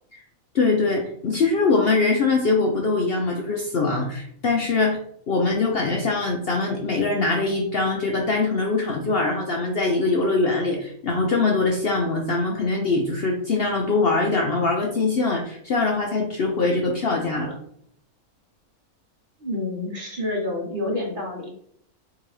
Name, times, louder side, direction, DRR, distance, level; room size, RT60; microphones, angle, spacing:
voice 1, 0.5-5.0 5.3-17.6, left 3 dB, 60° left, 1 dB, 0.7 m, -22 dB
voice 2, 19.4-21.5, left 2 dB, 40° right, -1 dB, 1.0 m, -28 dB
3.7 x 2.8 x 4.7 m, 0.66 s
omnidirectional pair, 1.5 m